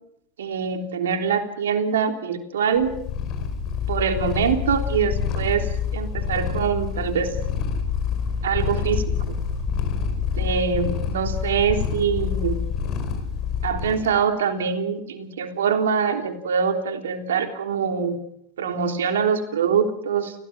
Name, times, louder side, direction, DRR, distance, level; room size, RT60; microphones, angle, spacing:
voice 1, 0.4-2.9 3.9-5.7 5.9-7.3 8.4-9.4 10.3-12.6 13.6-18.2 18.6-20.3, right 6 dB, 80° right, 5 dB, 3.4 m, -24 dB
Purr, 2.8-14.1, left 6 dB, 45° left, 5.1 m, -27 dB
30.0 x 17.0 x 6.1 m, 0.73 s
hypercardioid pair, 95°, 0 cm